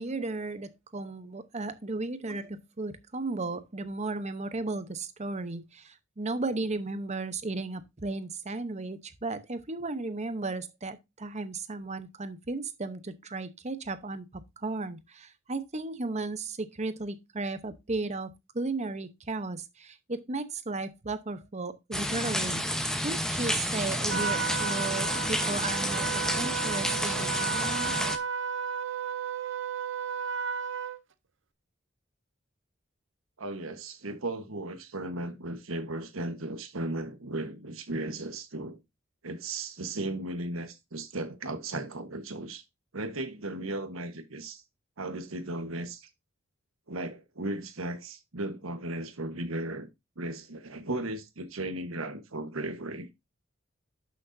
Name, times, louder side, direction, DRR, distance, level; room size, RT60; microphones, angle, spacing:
voice 1, 0.0-26.1 26.3-28.0, right 3 dB, 35° right, 0.9 m, -35 dB
sound 1, 21.9-28.2, equal, 5° left, 0.9 m, -30 dB
Trumpet, 24.1-31.0, right 6 dB, 60° right, 0.7 m, -33 dB
voice 2, 33.4-38.8 39.2-42.6 42.9-44.6 45.0-46.1 46.9-49.9 50.2-53.1, right 2 dB, 85° right, 1.3 m, -36 dB
11.5 x 6.4 x 2.7 m
head